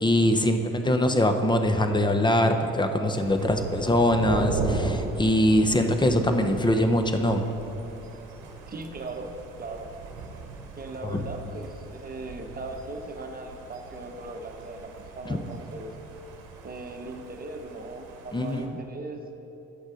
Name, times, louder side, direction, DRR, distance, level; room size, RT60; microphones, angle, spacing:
voice 1, 0.0-7.4 11.0-11.2 15.3-15.4 18.3-18.8, left 1 dB, 15° left, 7 dB, 0.8 m, -23 dB
Thunder, 3.2-18.7, right 3 dB, 80° right, 1.0 m, -38 dB
voice 2, 8.7-9.3 9.6-9.9 10.8-15.9 16.6-19.2, right 2 dB, 30° right, 3 dB, 1.1 m, -38 dB
9.5 x 6.3 x 5.0 m, 2.9 s
hypercardioid pair, 55°, 31 cm